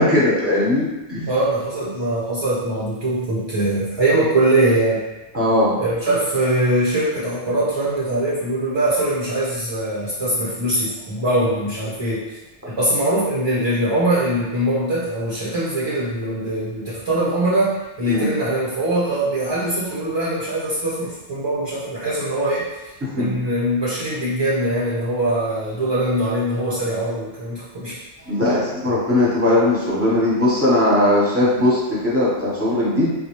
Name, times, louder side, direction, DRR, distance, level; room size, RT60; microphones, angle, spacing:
voice 1, 0.0-1.3 5.3-5.8 18.1-18.3 23.0-23.3 28.2-33.1, left 1 dB, 15° right, -7 dB, 0.8 m, -19 dB
voice 2, 1.3-5.0 5.8-12.4 12.7-22.8 23.1-28.0, right 1 dB, 45° right, -7 dB, 0.3 m, -22 dB
4.0 x 2.0 x 2.9 m, 1.0 s
omnidirectional pair, 1.2 m